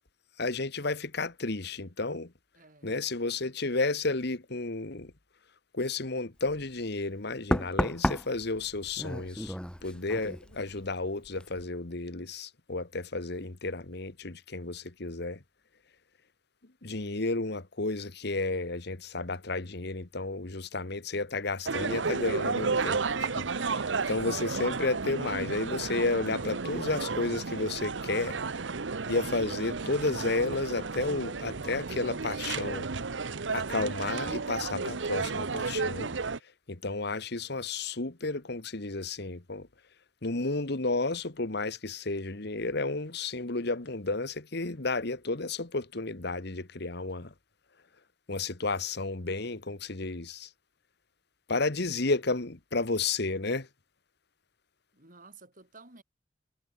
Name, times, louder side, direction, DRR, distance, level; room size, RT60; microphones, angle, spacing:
voice 1, 0.4-2.3 2.8-5.1 5.7-9.5 9.8-15.4 16.8-28.4 29.1-32.9 33.5-36.1 36.7-39.7 40.2-47.3 48.3-50.5 51.5-53.7, left 3 dB, 65° left, 1.7 m, -32 dB
voice 2, 2.5-3.0 54.9-56.0, right 3 dB, 50° right, 7.5 m, -53 dB
Knock, 6.4-6.7 7.5-11.0 11.2-11.6, equal, 5° left, 2.2 m, -33 dB
sound 1, 21.7-36.4, right 4 dB, 85° right, 1.0 m, -33 dB
head